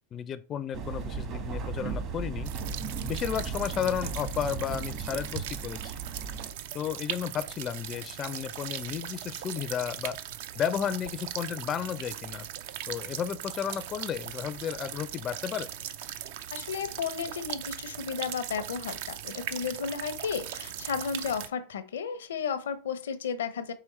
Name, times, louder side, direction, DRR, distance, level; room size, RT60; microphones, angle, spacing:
voice 1, 0.1-2.5 3.0-5.9 6.7-10.2 10.6-12.5 12.9-15.7, left 8 dB, 35° left, 14 dB, 0.4 m, -33 dB
sound 1, 0.7-6.5, right 5 dB, 45° right, 1.2 m, -36 dB
sound 2, 2.5-21.5, right 11 dB, 65° right, 0.4 m, -39 dB
voice 2, 16.5-23.7, left 6 dB, 80° left, 11 dB, 0.6 m, -33 dB
4.8 x 3.1 x 3.1 m, 0.36 s
hypercardioid pair, 100°, 0 cm